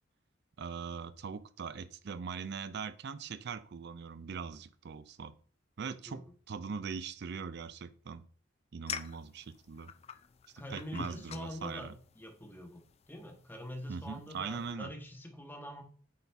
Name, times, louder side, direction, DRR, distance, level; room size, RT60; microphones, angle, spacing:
voice 1, 0.6-5.4 5.8-8.2 8.7-9.9 10.7-12.0 13.9-14.9, right 5 dB, 60° right, 13 dB, 0.4 m, -41 dB
sound 1, 8.9-14.7, left 7 dB, 30° left, 0.3 m, -47 dB
voice 2, 10.6-12.8 13.1-15.8, left 1 dB, 10° left, 4 dB, 1.0 m, -45 dB
8.6 x 4.1 x 3.4 m, 0.43 s
head